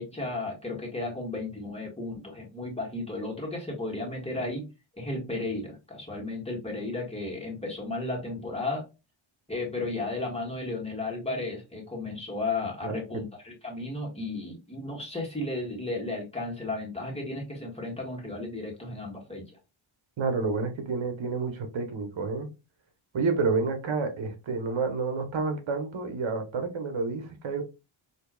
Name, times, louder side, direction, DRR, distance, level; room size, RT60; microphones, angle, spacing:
voice 1, 0.0-4.6 5.0-8.8 9.5-19.4, left 2 dB, 10° left, 1.6 m, -34 dB
voice 2, 20.2-22.5 23.1-27.6, right 4 dB, 65° right, 1.0 m, -29 dB
4.4 x 2.8 x 2.3 m
cardioid pair, 75°, 50 cm